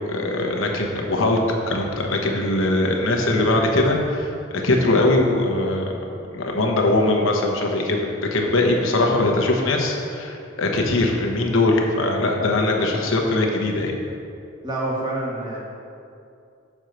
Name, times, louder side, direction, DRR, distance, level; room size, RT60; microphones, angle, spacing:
voice 1, 0.0-5.8 6.3-14.0, left 2 dB, 75° left, 1 dB, 1.0 m, -21 dB
voice 2, 14.6-15.6, right 2 dB, 20° right, -5 dB, 1.4 m, -27 dB
6.3 x 4.5 x 6.5 m, 2.6 s
head